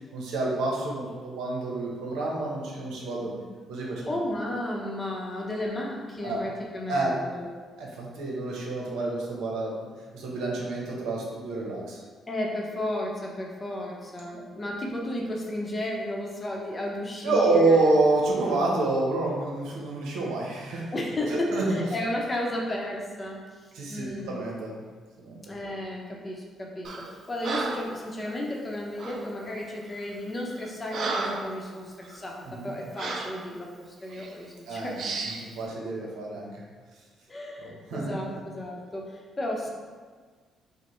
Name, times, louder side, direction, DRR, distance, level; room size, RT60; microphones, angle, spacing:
voice 1, 0.1-4.2 6.2-6.4 6.9-7.1 7.8-9.9 10.1-12.0 14.3-14.4 17.2-20.9 21.3-21.8 23.7-24.7 25.2-25.4 32.5-32.7 34.7-36.5 37.6-38.1, right 2 dB, 85° right, -3 dB, 0.8 m, -28 dB
voice 2, 4.1-7.5 12.3-18.0 20.9-24.5 25.4-35.1 37.3-39.7, left 1 dB, 25° left, -1 dB, 0.7 m, -33 dB
Breathing, 26.8-27.1 27.4-27.9 29.0-29.3 29.9-30.1 30.5-31.6 32.0-32.2 33.0-33.4 34.1-34.3 35.0-35.5, right 3 dB, 60° right, 0.4 m, -33 dB
5.2 x 2.1 x 3.1 m, 1.5 s
cardioid pair, 90°, 0 cm